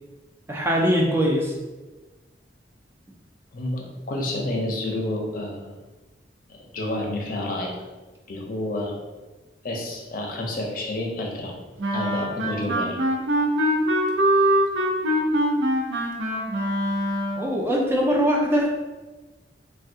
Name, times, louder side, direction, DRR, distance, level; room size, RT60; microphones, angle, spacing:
voice 1, 0.5-1.5 17.4-18.7, equal, 15° right, -1 dB, 0.3 m, -21 dB
voice 2, 3.5-5.8 6.5-7.8 8.3-9.0 9.6-11.5 11.9-13.0, left 1 dB, 50° left, 0 dB, 0.6 m, -29 dB
Wind instrument woodwind instrument, 11.8-17.5, right 1 dB, 90° right, 0.5 m, -23 dB
3.3 x 2.2 x 2.7 m, 1.2 s
head